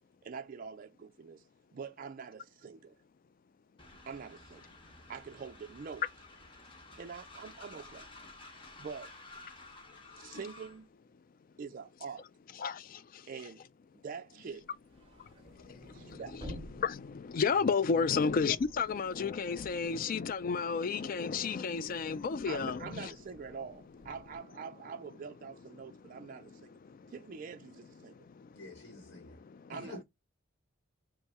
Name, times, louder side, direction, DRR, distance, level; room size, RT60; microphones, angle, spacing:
voice 1, 0.2-1.4 1.7-2.9 4.1-4.6 5.1-6.0 7.0-8.1 8.8-9.1 10.2-10.9 11.6-12.2 13.3-13.6 14.0-14.7 15.9-16.4 22.5-26.8 27.1-28.1 29.7-30.0, right 6 dB, 45° right, 0.4 m, -45 dB
Train, 3.8-10.8, left 2 dB, 25° left, 0.9 m, -53 dB
voice 2, 9.9-10.4 12.6-13.3 15.1-23.1 25.8-27.1 28.0-29.8, left 5 dB, 45° left, 0.3 m, -34 dB
sound 1, 14.6-20.7 21.1-24.4, equal, 25° right, 1.6 m, -52 dB
voice 3, 28.5-29.4 29.7-30.0, left 2 dB, 65° left, 1.0 m, -48 dB
5.3 x 2.0 x 3.5 m
head